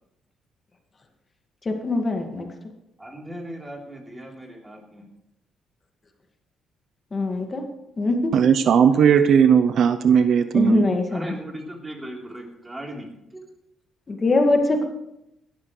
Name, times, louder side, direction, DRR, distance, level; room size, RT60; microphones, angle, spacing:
voice 1, 1.6-2.5 7.1-7.6 8.0-8.2 10.5-11.3 14.1-14.9, left 2 dB, 35° left, 3 dB, 2.1 m, -22 dB
voice 2, 3.0-5.1 11.1-13.1 13.3-13.5, right 1 dB, 15° right, 0 dB, 3.8 m, -38 dB
voice 3, 8.3-10.8, right 7 dB, 65° right, 10 dB, 0.7 m, -17 dB
17.5 x 12.5 x 3.3 m, 0.83 s
cardioid pair, 90°, 0 cm